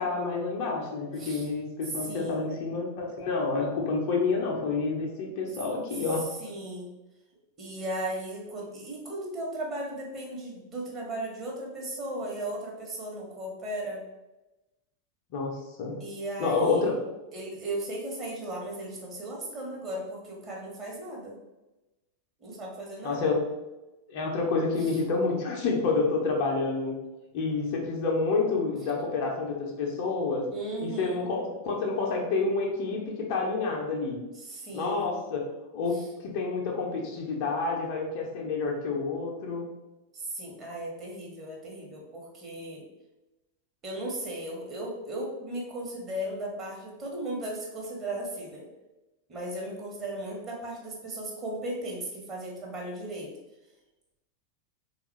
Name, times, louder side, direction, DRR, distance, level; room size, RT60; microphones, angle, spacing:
voice 1, 0.0-6.3 15.3-16.0 16.4-16.9 23.0-23.4 24.1-26.9 27.3-30.5 30.8-34.2 34.7-35.4 35.7-36.0 36.2-39.6, left 4 dB, 45° left, 0 dB, 0.7 m, -28 dB
voice 2, 2.0-2.6 6.4-6.9 7.6-14.0 16.0-16.8 17.3-21.4 22.4-23.3 24.8-25.0 30.5-31.3 34.4-35.1 35.9-36.1 40.1-42.8 43.8-48.6 49.3-53.3, right 1 dB, 25° right, -2 dB, 1.1 m, -36 dB
3.6 x 2.4 x 3.1 m, 1.0 s
figure-of-eight pair, 90°, 0 cm